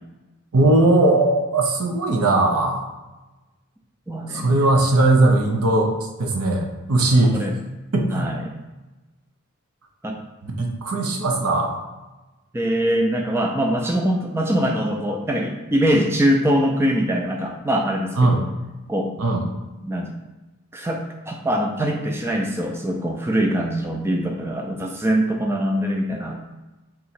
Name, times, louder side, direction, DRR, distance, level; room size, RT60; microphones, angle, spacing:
voice 1, 0.5-2.9 4.3-5.9 6.2-7.4 7.9-8.3 10.4-11.8 18.2-18.4 19.2-19.4, right 2 dB, 85° right, 2 dB, 0.7 m, -19 dB
voice 2, 4.1-4.5 7.3-7.6 8.1-8.4 10.0-10.2 12.5-18.4 18.9-19.1 19.8-20.1 20.7-26.4, equal, 10° right, 2 dB, 0.3 m, -23 dB
3.7 x 2.9 x 4.2 m, 1.1 s
head